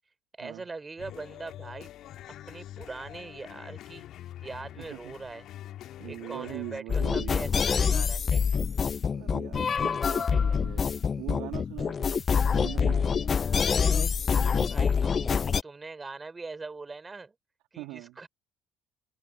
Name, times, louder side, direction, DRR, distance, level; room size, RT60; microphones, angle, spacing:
voice 1, 0.4-1.9 2.4-4.1 4.4-5.5 6.0-8.2 14.7-15.4 15.6-17.3 17.7-18.3, right 3 dB, 25° right, 5.7 m, -41 dB
sound 1, 1.0-6.8, left 12 dB, 60° left, 2.0 m, -45 dB
voice 2, 4.8-5.1 6.0-7.4 9.1-13.3 17.8-18.2, right 19 dB, 70° right, 2.0 m, -41 dB
sound 2, 6.9-15.6, left 6 dB, 35° left, 0.3 m, -26 dB
hypercardioid pair, 60°, 0 cm